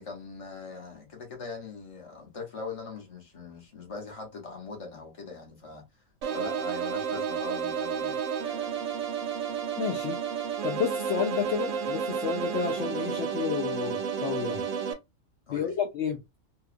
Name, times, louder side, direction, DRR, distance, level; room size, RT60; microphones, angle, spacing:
voice 1, 0.0-5.8 6.3-8.2 15.5-15.7, left 4 dB, 30° left, 0.9 m, -41 dB
sound 1, 6.2-14.9, right 6 dB, 75° right, 0.9 m, -31 dB
voice 2, 9.8-10.2 10.6-14.6 15.5-16.2, left 7 dB, 65° left, 0.8 m, -31 dB
2.8 x 2.3 x 2.4 m
omnidirectional pair, 1.3 m